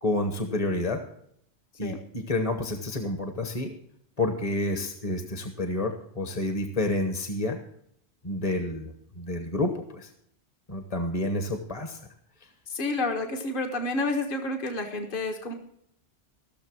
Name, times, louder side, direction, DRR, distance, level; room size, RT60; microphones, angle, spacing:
voice 1, 0.0-1.0 1.8-3.7 4.2-7.6 8.2-10.1 10.7-12.0, left 1 dB, 35° left, 6 dB, 1.2 m, -29 dB
voice 2, 12.7-15.5, left 2 dB, 55° left, 4 dB, 1.6 m, -29 dB
15.5 x 6.8 x 6.2 m, 0.70 s
omnidirectional pair, 1.1 m